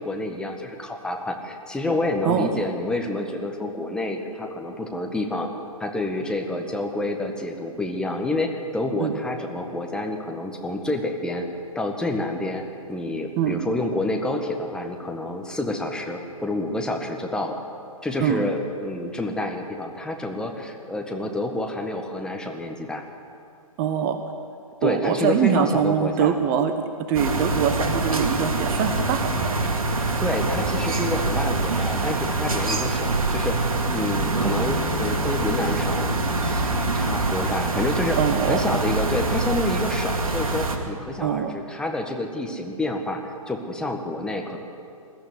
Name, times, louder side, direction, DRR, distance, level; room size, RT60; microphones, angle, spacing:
voice 1, 0.0-5.5 5.8-11.5 11.8-12.6 12.9-17.6 18.0-23.0 24.8-26.4 29.9-38.2 38.5-44.6, left 2 dB, 5° left, 2 dB, 1.7 m, -28 dB
voice 2, 23.8-24.2 24.8-29.6 38.2-38.6 41.2-41.5, right 8 dB, 30° right, 8 dB, 1.2 m, -23 dB
sound 1, 27.1-40.8, right 3 dB, 70° right, 2.8 m, -25 dB
21.5 x 13.5 x 9.7 m, 2.4 s
figure-of-eight pair, 125°, 19 cm